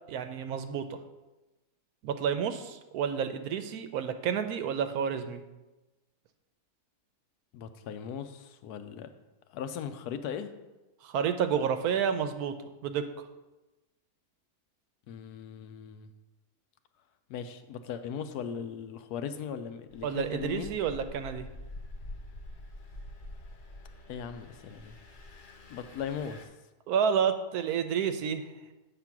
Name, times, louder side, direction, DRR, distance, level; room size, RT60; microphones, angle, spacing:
voice 1, 0.1-1.0 2.0-5.4 11.0-12.5 12.8-13.0 20.0-21.5 26.9-28.4, right 7 dB, 80° right, 9 dB, 1.1 m, -30 dB
voice 2, 7.5-9.1 9.5-10.5 15.1-16.1 17.3-20.7 24.1-25.0 25.7-26.5, left 7 dB, 90° left, 9 dB, 1.1 m, -38 dB
Engine, 19.9-26.4, left 1 dB, 50° left, 0.6 m, -46 dB
8.2 x 3.7 x 5.9 m, 1.1 s
omnidirectional pair, 1.6 m